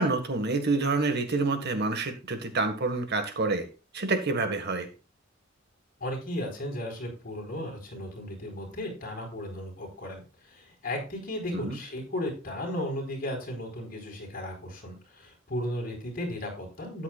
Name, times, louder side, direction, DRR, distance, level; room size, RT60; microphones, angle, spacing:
voice 1, 0.0-3.7 3.9-4.9 11.5-11.8, right 3 dB, 55° right, 7 dB, 1.7 m, -27 dB
voice 2, 6.0-17.0, left 1 dB, 50° left, 1 dB, 4.7 m, -35 dB
13.0 x 9.8 x 2.5 m, 0.33 s
head